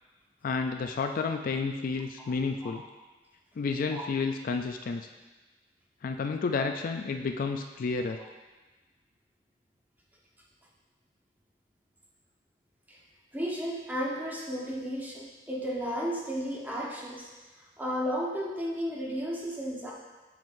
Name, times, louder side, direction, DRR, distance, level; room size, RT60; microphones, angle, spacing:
voice 1, 0.4-2.8 3.6-5.1 6.0-8.2, left 4 dB, 50° left, 5 dB, 0.3 m, -31 dB
voice 2, 13.3-17.3 17.8-19.9, equal, 10° right, -4 dB, 1.1 m, -33 dB
7.6 x 7.3 x 2.6 m, 1.2 s
head